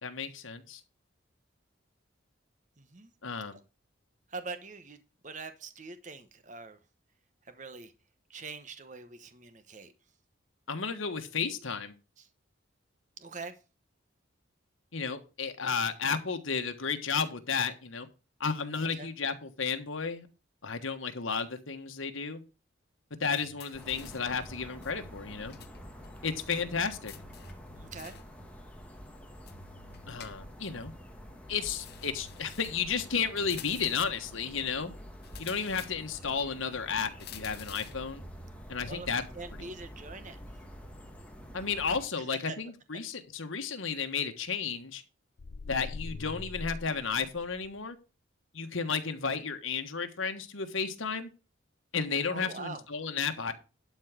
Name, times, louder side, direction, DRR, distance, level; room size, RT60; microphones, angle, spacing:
voice 1, 0.0-0.8 3.2-3.6 10.7-11.9 14.9-18.1 18.4-20.3 20.6-22.4 23.2-25.5 26.2-27.1 30.1-30.9 31.5-34.9 35.4-38.2 38.7-39.2 41.5-45.0 45.7-48.0 48.5-51.3 51.9-53.5, left 5 dB, 85° left, 1.4 m, -33 dB
voice 2, 2.8-3.1 3.5-3.6 4.3-5.0 5.2-6.8 7.4-7.9 8.3-9.9 12.2-12.3 13.2-13.6 19.0-19.1 27.7-28.2 38.8-39.1 39.3-40.4 42.2-42.6 52.3-52.8, right 3 dB, 40° right, 1.1 m, -43 dB
sound 1, 23.4-24.3 24.8-25.8 26.0-26.1 27.1-28.3 29.5-30.7 31.8-32.9 33.4-34.2 35.2-36.3 37.2-38.1, left 9 dB, 50° left, 1.1 m, -50 dB
sound 2, 23.7-42.1, equal, 5° left, 1.4 m, -48 dB
sound 3, 45.4-47.8, left 3 dB, 65° left, 0.5 m, -42 dB
12.0 x 4.6 x 6.1 m
head